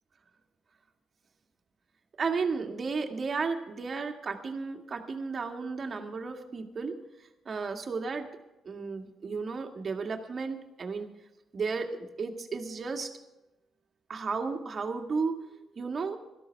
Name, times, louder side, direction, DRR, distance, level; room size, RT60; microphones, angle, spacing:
voice 1, 2.2-7.0 7.5-8.3 8.7-11.1 11.5-13.1 14.1-15.4 15.8-16.2, right 4 dB, 40° right, 4 dB, 1.9 m, -33 dB
17.0 x 13.5 x 4.6 m, 0.98 s
cardioid pair, 90°, 0 cm